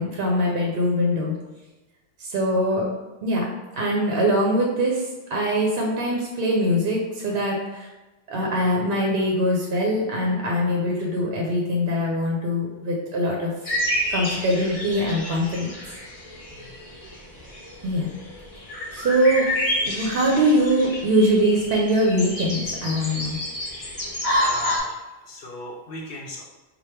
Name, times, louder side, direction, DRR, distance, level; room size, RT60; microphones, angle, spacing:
voice 1, 0.0-1.3 2.2-2.9 3.2-3.5 3.8-7.9 8.3-13.5 14.1-15.7 17.8-18.1 18.9-19.4 19.8-23.4, equal, 65° right, -1 dB, 0.7 m, -22 dB
sound 1, 13.6-24.8, left 1 dB, 30° left, 1.0 m, -29 dB
voice 2, 23.7-25.0 25.2-26.4, left 1 dB, 65° left, -1 dB, 0.7 m, -39 dB
3.2 x 2.2 x 4.3 m, 1.1 s
omnidirectional pair, 1.2 m